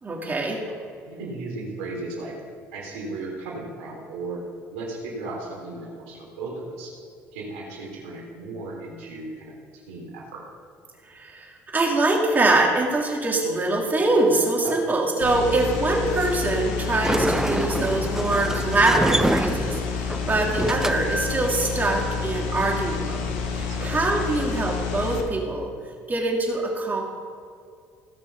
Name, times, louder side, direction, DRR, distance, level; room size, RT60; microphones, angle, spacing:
voice 1, 0.0-0.6 11.1-23.2 23.5-25.7 26.1-27.0, right 2 dB, 30° right, -1 dB, 3.1 m, -23 dB
voice 2, 1.0-2.4 2.7-4.4 4.7-6.9 7.3-10.4 14.6-14.8 15.4-15.7 23.7-23.9, right 2 dB, 90° right, -2 dB, 3.1 m, -36 dB
sound 1, 15.2-25.2, left 6 dB, 85° left, 1.3 m, -29 dB
Sliding door, 16.8-24.4, right 1 dB, 10° right, 0.5 m, -28 dB
17.0 x 6.0 x 5.6 m, 2.2 s
supercardioid pair, 70°, 6 cm